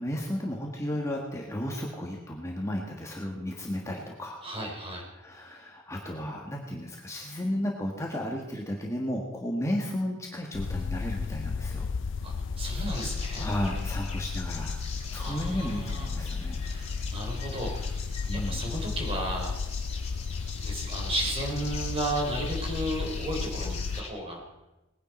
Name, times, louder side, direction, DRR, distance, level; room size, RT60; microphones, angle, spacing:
voice 1, 0.0-4.4 5.1-11.9 13.4-14.8 15.1-16.6 18.3-18.6, left 1 dB, 15° left, -1 dB, 1.5 m, -33 dB
voice 2, 4.4-5.1 12.2-13.5 15.1-16.1 16.6-18.0 18.3-19.5 20.6-24.4, right 1 dB, 25° right, -1 dB, 3.6 m, -34 dB
sound 1, 10.5-24.0, left 4 dB, 60° left, 0.4 m, -33 dB
sound 2, 12.9-24.1, left 5 dB, 30° left, 2.3 m, -43 dB
20.0 x 10.0 x 4.4 m, 1.0 s
head